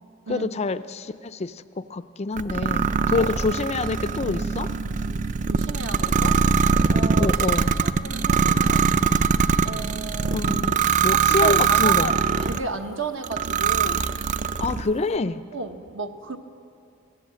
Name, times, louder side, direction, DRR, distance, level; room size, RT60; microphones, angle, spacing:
voice 1, 0.3-4.7 7.2-7.7 10.3-10.8 11.0-12.1 14.6-15.4, left 3 dB, 30° left, 13 dB, 0.4 m, -27 dB
sound 1, 2.4-12.7 13.2-14.9, right 5 dB, 35° right, 0.4 m, -22 dB
voice 2, 5.5-6.4 6.9-7.4 7.8-9.0 9.6-10.4 11.0-14.2 15.5-16.4, right 3 dB, 65° right, 6 dB, 1.1 m, -33 dB
23.0 x 17.0 x 7.6 m, 2.7 s
head